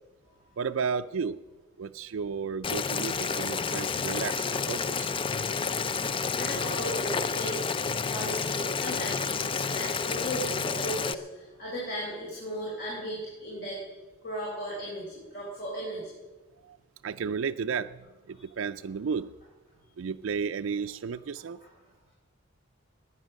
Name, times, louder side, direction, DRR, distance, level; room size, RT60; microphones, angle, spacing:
voice 1, 0.6-1.4 1.8-5.1 16.6-16.8 17.0-19.3 20.0-21.6, right 6 dB, 70° right, 9 dB, 0.4 m, -33 dB
Boiling, 2.6-11.1, left 5 dB, 25° left, 0.4 m, -30 dB
voice 2, 6.3-13.8 14.2-16.1 18.3-18.4 21.4-21.7, equal, 55° left, -5 dB, 4.3 m, -36 dB
18.5 x 9.7 x 6.4 m, 1.2 s
head